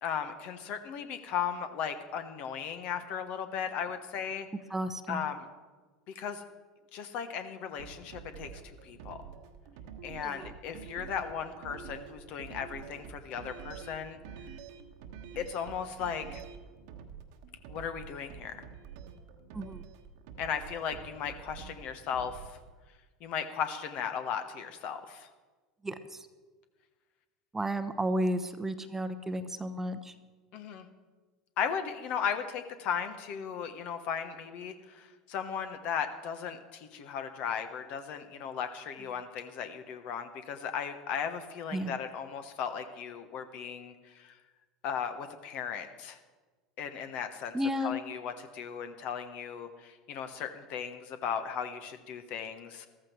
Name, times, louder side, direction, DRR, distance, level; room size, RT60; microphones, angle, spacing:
voice 1, 0.0-4.5 5.1-5.5 6.1-6.4 6.9-9.2 10.0-14.2 15.3-16.4 17.7-18.6 20.4-22.6 23.2-25.3 30.5-30.9 31.6-44.4 44.8-46.2 46.8-47.6 47.8-52.9, left 7 dB, 50° left, 9 dB, 1.3 m, -36 dB
voice 2, 4.7-5.2 10.2-10.5 19.5-19.8 25.8-26.3 27.5-30.1 41.7-41.9 47.5-47.9, equal, 10° right, 10 dB, 0.9 m, -33 dB
sound 1, 7.7-22.7, right 7 dB, 60° right, 1.3 m, -47 dB
14.0 x 13.5 x 4.6 m, 1.3 s
hypercardioid pair, 80°, 3 cm